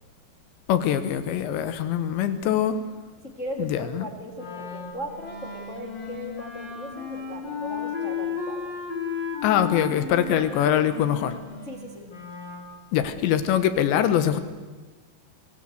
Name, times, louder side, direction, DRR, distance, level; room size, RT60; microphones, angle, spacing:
voice 1, 0.7-2.8 3.6-4.1 9.4-11.4 12.9-14.4, left 10 dB, 75° left, 12 dB, 3.4 m, -23 dB
voice 2, 3.2-8.8 11.6-12.1, equal, 55° left, 0 dB, 0.8 m, -38 dB
Wind instrument woodwind instrument, 4.3-12.7, left 6 dB, 30° left, 2.8 m, -34 dB
24.5 x 16.5 x 8.0 m, 1.3 s
omnidirectional pair, 5.4 m